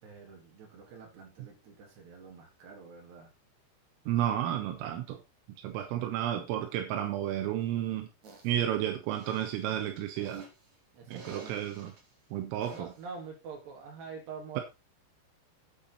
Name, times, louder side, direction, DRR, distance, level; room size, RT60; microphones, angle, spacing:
voice 1, 0.0-3.3 10.9-11.7 12.7-14.6, right 5 dB, 55° right, 0 dB, 5.3 m, -46 dB
voice 2, 4.1-5.2 5.6-8.1 8.4-10.5 11.1-11.9 12.3-12.9, right 11 dB, 85° right, 5 dB, 3.8 m, -32 dB
sound 1, 8.2-8.6 9.1-10.7 11.1-12.0 12.6-13.1, right 4 dB, 40° right, 3.5 m, -49 dB
9.6 x 9.1 x 4.2 m, 0.26 s
omnidirectional pair, 5.9 m